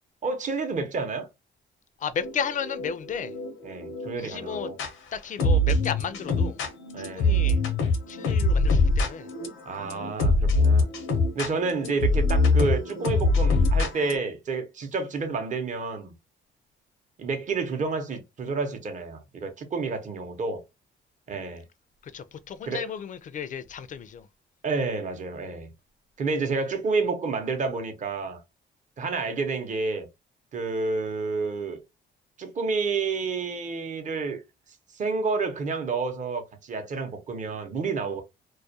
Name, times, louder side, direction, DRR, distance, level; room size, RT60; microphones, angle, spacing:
voice 1, 0.2-1.3 3.6-4.7 6.9-7.6 9.7-10.9 11.3-16.1 17.2-20.6 21.3-21.6 22.6-22.8 24.6-25.7 26.2-28.4 29.0-30.1 30.5-31.8 32.4-34.4 34.9-38.2, right 4 dB, 40° right, 0.7 m, -29 dB
voice 2, 2.0-3.3 4.2-4.7 5.1-6.6 7.1-7.6 8.1-9.3 22.0-24.3, left 7 dB, 40° left, 0.4 m, -33 dB
sound 1, 2.2-4.9 5.4-14.2, left 2 dB, 85° left, 0.6 m, -24 dB
2.3 x 2.1 x 2.7 m
cardioid pair, 90°, 20 cm